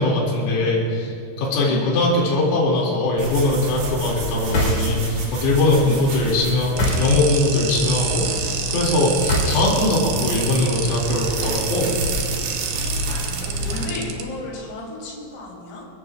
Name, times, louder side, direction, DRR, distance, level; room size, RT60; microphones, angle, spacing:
voice 1, 0.0-11.9, left 2 dB, 85° left, -4 dB, 5.3 m, -21 dB
voice 2, 1.6-2.0 5.8-6.2 12.7-15.9, left 2 dB, 55° left, -3 dB, 5.2 m, -35 dB
sound 1, 3.2-13.9, right 1 dB, 60° right, 4.3 m, -29 dB
sound 2, 4.4-5.2 6.6-7.5 9.1-10.0, left 1 dB, 35° left, 4.1 m, -23 dB
sound 3, 6.8-14.2, right 8 dB, 75° right, 2.5 m, -28 dB
27.0 x 15.0 x 2.5 m, 2.5 s
omnidirectional pair, 5.9 m